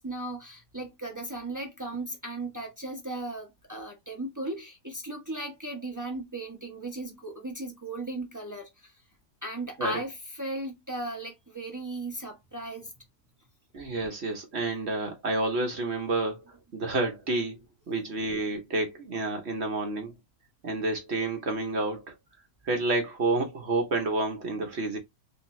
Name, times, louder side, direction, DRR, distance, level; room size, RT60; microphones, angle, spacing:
voice 1, 0.0-8.9 9.4-13.1, right 1 dB, 20° right, 0.5 m, -36 dB
voice 2, 13.7-16.4 16.7-17.5 17.9-20.1 20.6-22.1 22.6-25.0, right 2 dB, 50° right, 0.9 m, -29 dB
3.4 x 2.8 x 3.0 m
omnidirectional pair, 1.8 m